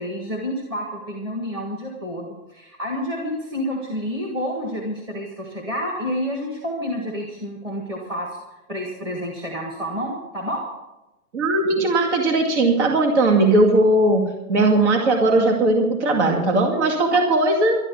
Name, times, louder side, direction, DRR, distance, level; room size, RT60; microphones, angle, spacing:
voice 1, 0.0-8.4 8.7-10.6 17.1-17.2, equal, 10° right, -2 dB, 1.6 m, -29 dB
voice 2, 11.3-14.2 14.5-17.8, right 2 dB, 50° right, 2 dB, 2.4 m, -18 dB
12.5 x 11.5 x 6.9 m, 0.97 s
hypercardioid pair, 165°, 44 cm